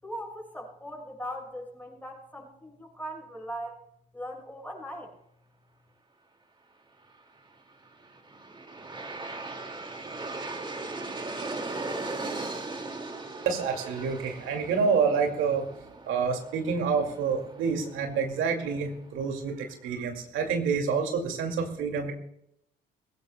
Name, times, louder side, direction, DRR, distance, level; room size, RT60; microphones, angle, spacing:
voice 1, 0.0-3.8 4.1-5.1, equal, 10° left, 0 dB, 6.4 m, -39 dB
Aircraft, 7.8-18.9, right 3 dB, 25° right, 2.1 m, -39 dB
voice 2, 13.5-15.7 16.1-22.1, right 5 dB, 90° right, 3 dB, 2.3 m, -28 dB
22.0 x 16.5 x 2.2 m, 0.76 s
cardioid pair, 90°, 20 cm